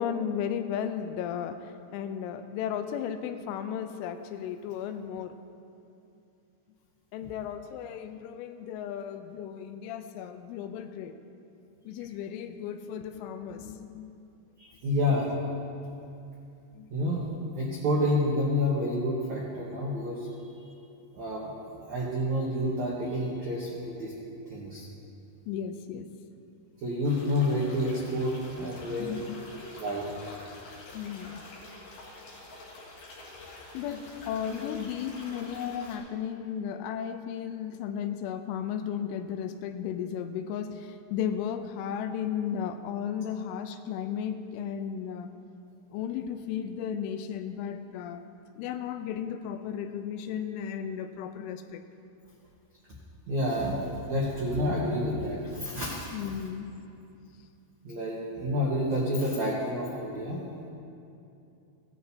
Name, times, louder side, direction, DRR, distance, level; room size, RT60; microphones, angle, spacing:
voice 1, 0.0-5.3 7.1-11.2 11.9-14.2 16.7-16.9 25.5-26.1 29.0-29.4 30.9-31.4 33.7-45.3 45.9-48.2 48.6-51.8 56.1-56.7, left 8 dB, 85° left, 8 dB, 3.1 m, -34 dB
voice 2, 14.6-15.3 16.9-20.3 21.1-21.5 21.8-24.1 24.5-24.9 26.8-29.1 29.8-30.1 53.3-56.1 57.8-60.4, left 1 dB, 85° right, -5 dB, 1.6 m, -29 dB
sound 1, 27.0-36.0, left 2 dB, 60° left, 3.5 m, -47 dB
17.0 x 11.5 x 2.8 m, 2.7 s
omnidirectional pair, 5.6 m